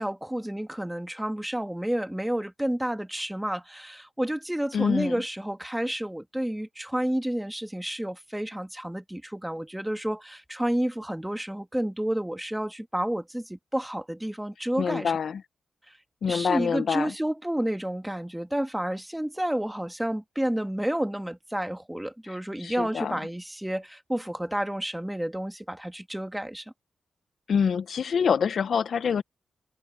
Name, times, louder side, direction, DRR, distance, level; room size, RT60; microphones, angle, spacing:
voice 1, 0.0-15.1 15.9-16.0 16.3-26.7, right 1 dB, 5° right, 2.1 m, -30 dB
voice 2, 4.7-5.1 14.8-15.4 16.2-17.1 22.6-23.2 27.5-29.2, left 6 dB, 70° left, 0.6 m, -26 dB
cardioid pair, 60°, 0 cm